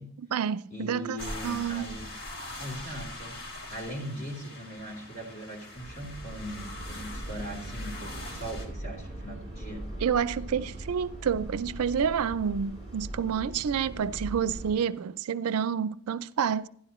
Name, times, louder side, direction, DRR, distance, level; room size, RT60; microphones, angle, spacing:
voice 1, 0.2-1.2 1.4-2.0 10.0-16.7, right 7 dB, 80° right, 0.4 m, -29 dB
voice 2, 0.7-2.1 2.6-3.4 3.7-9.9, equal, 45° left, 3.2 m, -40 dB
sound 1, 1.2-8.7, left 1 dB, 70° left, 2.6 m, -42 dB
sound 2, 5.7-14.7, right 1 dB, 30° left, 4.2 m, -40 dB
12.5 x 10.5 x 3.0 m
head